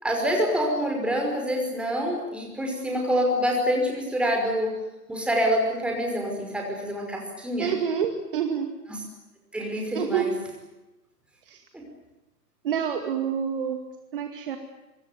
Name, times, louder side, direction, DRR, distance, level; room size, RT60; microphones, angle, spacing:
voice 1, 0.0-4.7 5.1-7.7 8.9-9.0 9.5-10.3 11.7-11.8, equal, ahead, 0 dB, 5.5 m, -26 dB
voice 2, 7.6-8.7 9.9-10.2 11.5-11.6 12.6-13.8 14.1-14.6, right 8 dB, 35° right, 5 dB, 2.4 m, -27 dB
26.0 x 25.5 x 8.5 m, 1.0 s
figure-of-eight pair, 135°, 49 cm